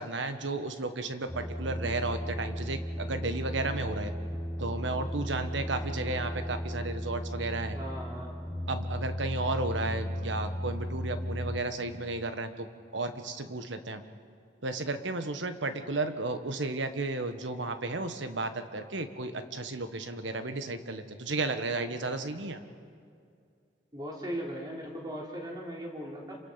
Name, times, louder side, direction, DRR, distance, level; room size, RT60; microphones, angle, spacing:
voice 1, 0.0-4.1 4.6-7.8 8.7-12.7 12.9-14.0 14.6-22.6, right 2 dB, 80° right, 8 dB, 1.4 m, -33 dB
sound 1, 1.3-11.6, equal, 5° right, 4.2 m, -35 dB
voice 2, 7.7-8.4 23.9-26.4, equal, 20° right, -2 dB, 3.5 m, -38 dB
28.0 x 25.5 x 5.8 m, 2.3 s
head